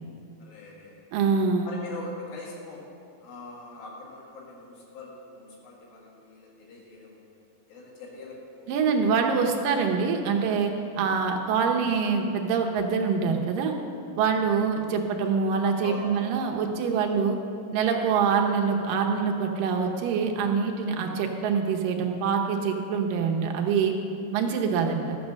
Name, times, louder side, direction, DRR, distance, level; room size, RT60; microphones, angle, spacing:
voice 1, 0.4-1.1 1.6-2.8 3.2-7.3 7.7-8.7 15.8-16.1, left 3 dB, 85° left, -2 dB, 3.6 m, -42 dB
voice 2, 1.1-1.7 8.7-13.7 14.2-17.4 17.7-23.9 24.3-25.2, right 5 dB, 75° right, 2 dB, 2.4 m, -25 dB
13.0 x 7.4 x 6.3 m, 2.6 s
omnidirectional pair, 4.1 m